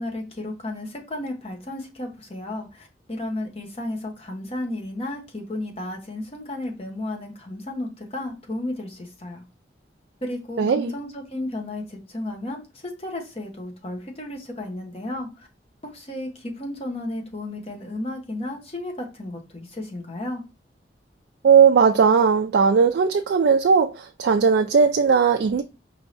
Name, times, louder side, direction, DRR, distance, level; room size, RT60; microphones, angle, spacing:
voice 1, 0.0-9.4 10.2-15.5 15.8-20.4, left 1 dB, 35° left, 0.9 m, -33 dB
voice 2, 10.6-10.9 21.4-25.6, right 6 dB, 75° right, 0.3 m, -18 dB
4.7 x 3.1 x 2.5 m
head